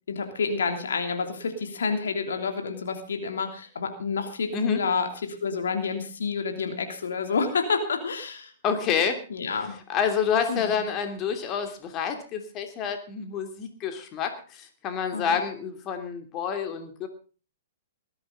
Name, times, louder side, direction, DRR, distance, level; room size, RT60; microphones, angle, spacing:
voice 1, 0.1-8.5 9.3-9.7 10.5-10.8 15.1-15.4, left 5 dB, 70° left, 6 dB, 3.0 m, -29 dB
voice 2, 8.6-9.2 9.9-17.1, left 7 dB, 30° left, 6 dB, 2.9 m, -28 dB
19.5 x 13.5 x 3.9 m, 0.37 s
figure-of-eight pair, 115°, 0 cm